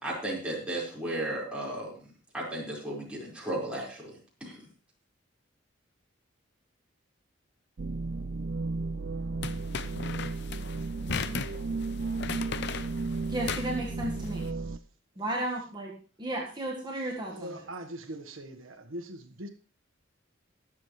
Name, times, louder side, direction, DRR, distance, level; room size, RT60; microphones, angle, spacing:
voice 1, 0.0-1.9 2.3-4.1 4.4-4.7, right 1 dB, 5° right, 4.9 m, -34 dB
sound 1, 7.8-14.8, right 3 dB, 55° right, 0.5 m, -34 dB
sound 2, 9.4-14.4, left 5 dB, 60° left, 0.7 m, -37 dB
voice 2, 13.3-14.5 15.2-15.9 16.2-17.7, right 1 dB, 20° right, 1.6 m, -34 dB
voice 3, 17.3-19.5, right 1 dB, 85° right, 1.4 m, -41 dB
21.5 x 7.5 x 3.2 m
head